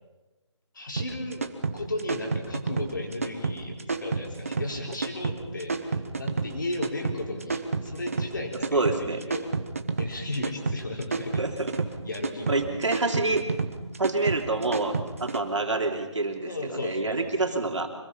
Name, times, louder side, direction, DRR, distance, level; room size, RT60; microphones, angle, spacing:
voice 1, 0.7-1.4 1.7-9.5 10.0-11.4 12.0-12.6 16.5-17.6, left 2 dB, 40° left, 1 dB, 4.3 m, -35 dB
sound 1, 1.0-15.4, right 4 dB, 30° right, 1.1 m, -30 dB
voice 2, 8.7-9.2 11.4-11.7 12.5-13.4 14.0-17.9, right 3 dB, 80° right, 3 dB, 3.2 m, -27 dB
25.5 x 20.0 x 5.8 m, 1.1 s
figure-of-eight pair, 180°, 15 cm